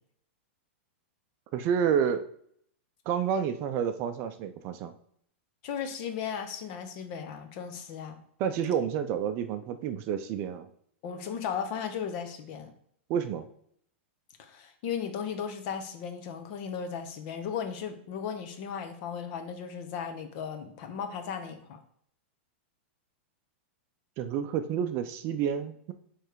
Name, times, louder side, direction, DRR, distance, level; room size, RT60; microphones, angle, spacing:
voice 1, 1.5-2.3 3.1-4.9 8.4-10.7 13.1-13.4 24.2-25.9, right 8 dB, 35° right, 9 dB, 0.5 m, -29 dB
voice 2, 5.6-8.2 11.0-12.7 14.4-21.8, left 7 dB, 45° left, 6 dB, 1.1 m, -36 dB
7.0 x 3.3 x 4.7 m, 0.67 s
supercardioid pair, 150°, 7 cm